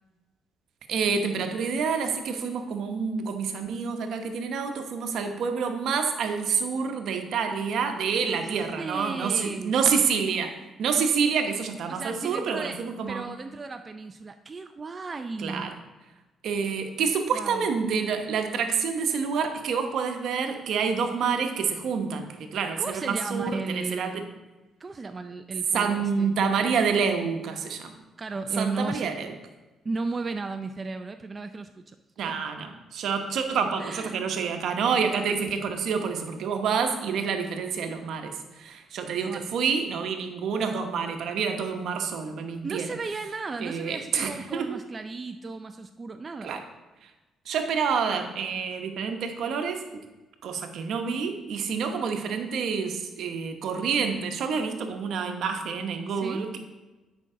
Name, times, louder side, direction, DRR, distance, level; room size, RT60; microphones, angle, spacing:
voice 1, 0.9-10.5 10.8-13.3 15.4-15.7 16.4-24.2 25.7-27.9 28.6-29.3 32.2-38.3 38.6-42.9 43.6-44.8 46.4-46.6 47.5-49.8 50.4-56.6, right 6 dB, 75° right, 5 dB, 0.9 m, -28 dB
voice 2, 8.2-9.7 11.9-15.9 17.3-17.7 22.8-24.2 24.8-26.3 28.2-29.1 29.8-32.3 33.8-34.2 39.3-39.5 42.6-46.6 56.1-56.5, right 3 dB, 30° right, 7 dB, 0.4 m, -35 dB
8.9 x 5.3 x 3.7 m, 1.1 s
cardioid pair, 90°, 0 cm